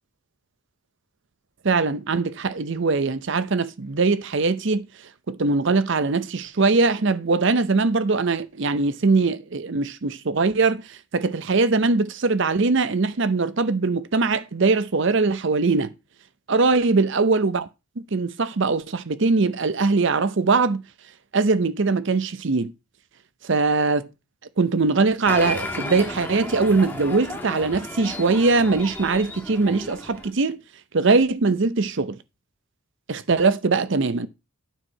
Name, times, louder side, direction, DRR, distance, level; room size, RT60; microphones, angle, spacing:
voice 1, 1.6-4.8 5.3-15.9 16.5-17.7 18.1-20.8 21.3-22.7 23.4-24.1 24.6-30.6 30.9-32.2 33.1-34.3, right 3 dB, 60° right, 0.7 m, -21 dB
Applause, 25.2-30.3, left 1 dB, 10° left, 1.5 m, -33 dB
9.2 x 4.6 x 5.5 m
head